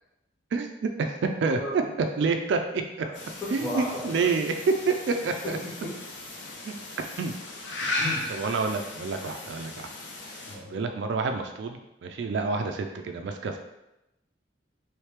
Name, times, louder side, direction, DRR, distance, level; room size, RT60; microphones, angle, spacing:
voice 1, 1.5-1.9 3.0-3.1 3.4-4.3 5.4-5.9 7.8-8.3 10.5-10.7, left 1 dB, 5° left, -9 dB, 1.1 m, -35 dB
voice 2, 2.2-2.8 3.5-4.5 4.9-5.6 6.6-7.3 8.3-9.9 10.7-13.6, right 4 dB, 75° right, 5 dB, 0.3 m, -28 dB
sound 1, 3.1-10.6, left 2 dB, 80° left, 0.6 m, -36 dB
3.2 x 3.1 x 3.3 m, 0.91 s
head